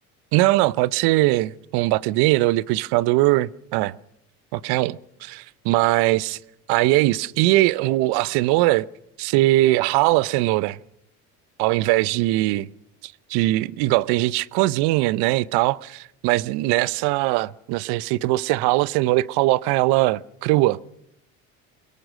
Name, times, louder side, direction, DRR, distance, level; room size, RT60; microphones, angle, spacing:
voice 1, 0.3-4.0 4.5-6.4 6.7-8.9 9.2-10.8 11.6-12.7 13.0-20.8, right 18 dB, 60° right, 0.8 m, -21 dB
23.5 x 21.0 x 6.4 m
hypercardioid pair, 75°, 43 cm